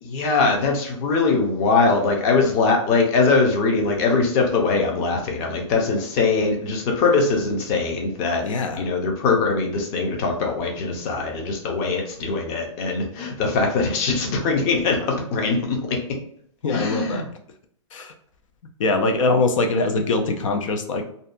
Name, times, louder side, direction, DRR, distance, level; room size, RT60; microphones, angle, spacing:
voice 1, 0.0-8.4 8.8-16.0 16.7-17.2, left 4 dB, 35° left, 1 dB, 0.6 m, -22 dB
voice 2, 8.4-8.9 16.6-17.2 17.9-18.1 18.8-21.0, left 3 dB, 85° left, 5 dB, 0.5 m, -22 dB
2.6 x 2.2 x 2.5 m, 0.65 s
hypercardioid pair, 155°, 16 cm